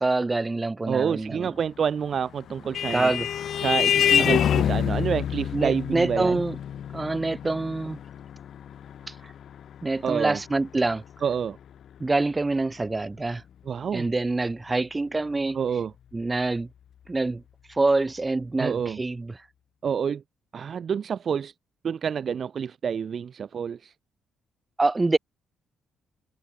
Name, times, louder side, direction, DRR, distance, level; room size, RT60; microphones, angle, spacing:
voice 1, 0.0-1.5 2.9-3.3 4.0-4.4 5.5-6.5 6.9-8.0 9.1-9.3 9.8-11.0 12.0-13.4 13.9-15.6 16.1-16.7 17.1-17.4 17.7-19.3 24.8-25.2, right 3 dB, 20° right, 1.5 m, -26 dB
voice 2, 0.9-3.1 3.6-6.4 10.0-10.4 11.2-11.6 13.7-14.1 15.5-15.9 18.6-19.0 19.8-20.2 20.5-21.5 21.8-23.9, right 7 dB, 50° right, 0.3 m, -28 dB
Vehicle horn car horn honking, 2.1-11.1, left 9 dB, 65° left, 0.9 m, -27 dB
cardioid pair, 90°, 0 cm